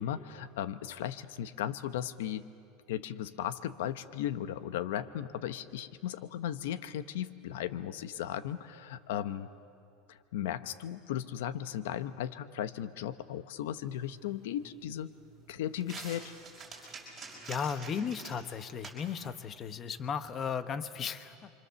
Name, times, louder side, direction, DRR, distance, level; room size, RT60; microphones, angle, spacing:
voice 1, 0.0-2.4 2.9-9.5 10.1-15.1 15.5-16.3, left 11 dB, 85° left, 13 dB, 0.9 m, -36 dB
sound 1, 13.7-20.6, right 4 dB, 15° right, 5.8 m, -50 dB
voice 2, 17.5-21.5, left 7 dB, 25° left, 11 dB, 0.9 m, -35 dB
29.5 x 25.5 x 7.0 m, 2.6 s
supercardioid pair, 160°, 0 cm